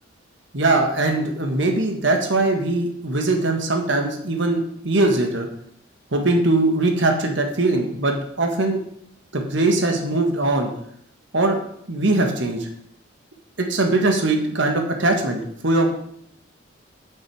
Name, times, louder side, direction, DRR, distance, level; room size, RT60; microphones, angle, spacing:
voice 1, 0.5-5.5 6.1-8.8 9.3-10.7 11.3-11.6 11.9-12.7 13.6-15.9, right 2 dB, 60° right, 4 dB, 1.5 m, -21 dB
9.1 x 8.9 x 4.7 m, 0.69 s
head